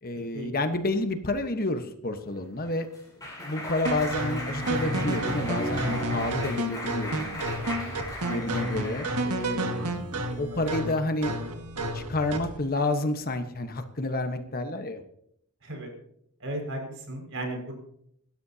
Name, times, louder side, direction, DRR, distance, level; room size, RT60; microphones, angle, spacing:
voice 1, 0.0-2.9 3.4-7.5 8.3-11.3 11.9-15.0, left 2 dB, 40° left, 7 dB, 1.3 m, -30 dB
Clapping, 2.4-9.6, left 1 dB, 15° left, 7.3 m, -37 dB
sound 1, 3.8-12.6, right 1 dB, 80° right, 1.8 m, -31 dB
voice 2, 7.7-8.7 9.8-9.9 15.6-15.9 16.4-17.8, right 1 dB, 60° right, 1 dB, 5.9 m, -36 dB
26.5 x 13.0 x 2.9 m, 0.71 s
head